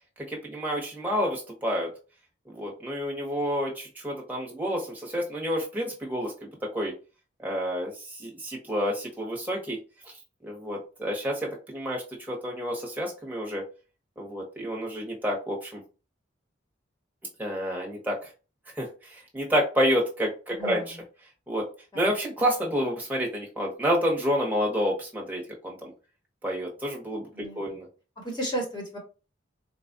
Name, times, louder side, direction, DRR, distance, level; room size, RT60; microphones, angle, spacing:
voice 1, 0.2-1.9 2.5-6.9 7.4-9.8 10.4-13.6 14.2-15.8 17.4-18.2 18.7-20.9 21.5-21.7 21.9-25.9 26.4-27.9, equal, 10° right, -2 dB, 1.1 m, -29 dB
voice 2, 20.6-21.0 21.9-22.1 27.3-27.6 28.2-29.0, right 1 dB, 20° left, 0 dB, 1.2 m, -34 dB
4.2 x 2.3 x 2.6 m, 0.32 s
head